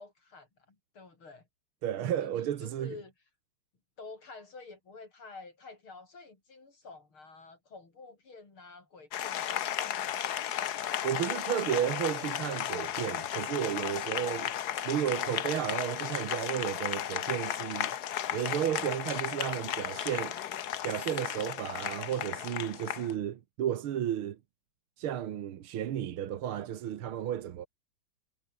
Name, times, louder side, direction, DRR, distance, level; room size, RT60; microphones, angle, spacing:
voice 1, 0.0-1.5 2.0-3.1 4.0-10.1 14.2-14.7 18.7-19.8, left 3 dB, 75° left, 5.6 m, -50 dB
voice 2, 1.8-3.0 11.0-14.5 14.9-18.0 18.3-20.4 20.8-24.4 25.0-27.7, right 10 dB, 80° right, 2.1 m, -33 dB
Applause, 9.1-23.1, left 11 dB, 60° left, 1.2 m, -34 dB
omnidirectional pair, 2.3 m